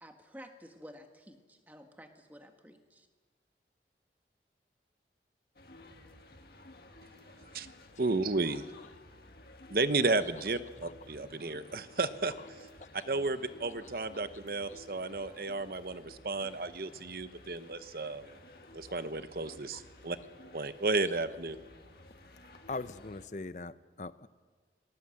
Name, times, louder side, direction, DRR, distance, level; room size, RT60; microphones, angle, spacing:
voice 1, 0.0-3.1, equal, 10° right, 5 dB, 1.5 m, -52 dB
sound 1, 5.6-23.3, left 1 dB, 60° left, 1.9 m, -54 dB
voice 2, 8.0-8.7 9.7-12.3 12.9-18.3 18.7-20.2 20.5-21.6, right 3 dB, 55° right, 12 dB, 0.9 m, -33 dB
voice 3, 22.7-24.3, left 3 dB, 45° left, 14 dB, 0.6 m, -41 dB
19.5 x 17.5 x 7.8 m, 1.4 s
head